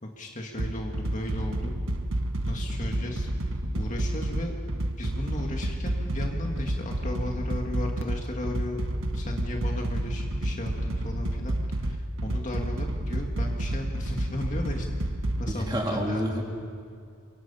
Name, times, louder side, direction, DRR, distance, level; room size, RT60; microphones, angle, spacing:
voice 1, 0.0-1.7 2.4-3.3 3.7-4.5 5.0-8.8 9.1-14.9 15.4-16.4, left 1 dB, 35° left, 1 dB, 2.0 m, -35 dB
sound 1, 0.6-15.5, right 1 dB, 65° right, 1.3 m, -30 dB
voice 2, 15.5-16.4, equal, 20° right, -1 dB, 3.4 m, -29 dB
29.5 x 24.0 x 5.7 m, 2.3 s
head